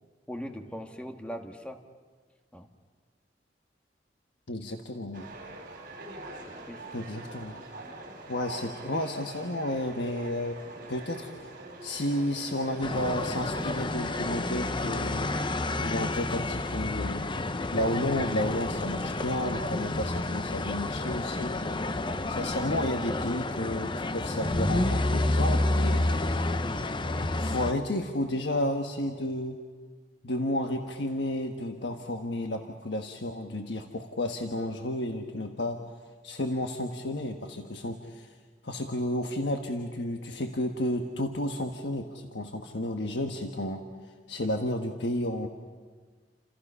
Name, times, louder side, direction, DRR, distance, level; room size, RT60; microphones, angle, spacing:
voice 1, 0.3-1.8 2.5-2.7 6.7-7.0, equal, 5° left, 5 dB, 1.5 m, -40 dB
voice 2, 4.5-5.3 6.9-7.6 8.3-10.6 10.9-11.5 11.8-15.3 15.8-17.3 17.7-26.5 27.4-29.6 30.2-35.8 36.2-38.3 38.6-43.8 44.3-45.5, left 1 dB, 70° left, 4 dB, 1.4 m, -32 dB
sound 1, 5.1-15.6, right 2 dB, 55° right, 5.0 m, -44 dB
sound 2, 12.8-27.7, left 2 dB, 30° left, 0.8 m, -29 dB
29.5 x 27.5 x 5.6 m, 1.5 s
head